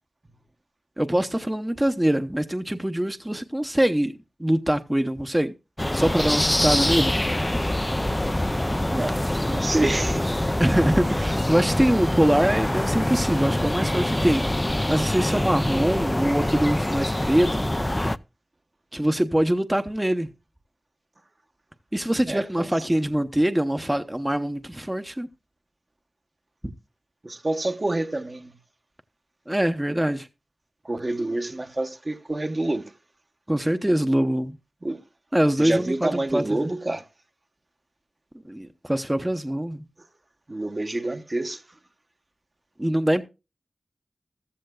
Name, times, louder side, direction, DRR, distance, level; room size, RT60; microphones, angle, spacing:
voice 1, 1.0-4.1 4.4-5.5 5.9-7.2 10.6-14.4 14.9-17.6 18.9-20.3 21.9-25.3 26.6-26.7 29.5-30.3 31.2-31.3 33.5-34.6 35.3-36.7 38.5-39.8 42.8-43.2, right 1 dB, 15° right, 0.8 m, -23 dB
sound 1, 5.8-18.2, left 1 dB, 20° left, 0.5 m, -25 dB
voice 2, 8.9-10.3 22.3-22.7 27.2-28.5 30.8-32.9 34.8-35.0 35.6-37.0 40.5-41.6, right 2 dB, 40° right, 1.1 m, -27 dB
14.5 x 14.0 x 2.3 m
cardioid pair, 45°, 0 cm